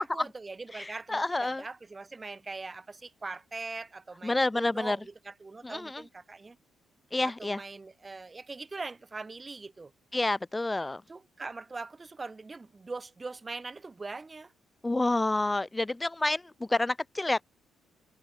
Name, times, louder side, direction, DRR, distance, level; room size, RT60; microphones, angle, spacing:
voice 1, 0.0-6.6 7.2-9.9 11.1-14.5, right 3 dB, 25° right, 1.1 m, -41 dB
voice 2, 0.7-1.6 4.2-5.0 5.6-6.0 7.1-7.6 10.1-11.0 14.8-17.4, left 2 dB, 15° left, 0.3 m, -29 dB
cardioid pair, 90°, 0 cm